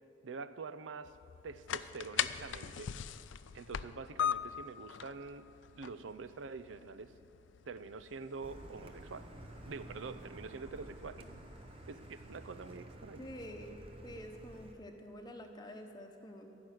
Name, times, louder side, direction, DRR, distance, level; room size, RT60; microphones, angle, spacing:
voice 1, 0.2-1.2 1.4-2.9 3.5-5.5 5.8-7.1 7.7-9.3 9.7-11.3 11.9-13.3, right 4 dB, 80° right, 13 dB, 0.5 m, -46 dB
sound 1, 1.0-12.8, left 9 dB, 75° left, 0.4 m, -42 dB
Car, 8.4-14.7, right 1 dB, 30° right, 0.9 m, -51 dB
voice 2, 13.2-13.8 14.0-16.6, equal, 20° left, 4 dB, 1.0 m, -48 dB
14.5 x 6.1 x 9.2 m, 3.0 s
head